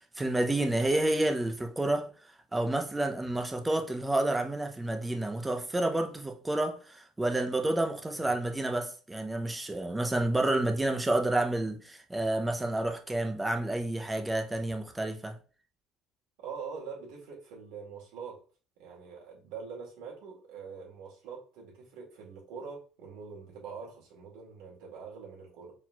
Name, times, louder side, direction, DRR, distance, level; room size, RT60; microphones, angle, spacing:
voice 1, 0.2-2.1 2.5-15.4, right 1 dB, 10° right, 0.6 m, -29 dB
voice 2, 16.4-18.4 18.8-25.7, right 5 dB, 85° right, 2.1 m, -44 dB
4.4 x 4.1 x 2.3 m
cardioid pair, 145°, 0 cm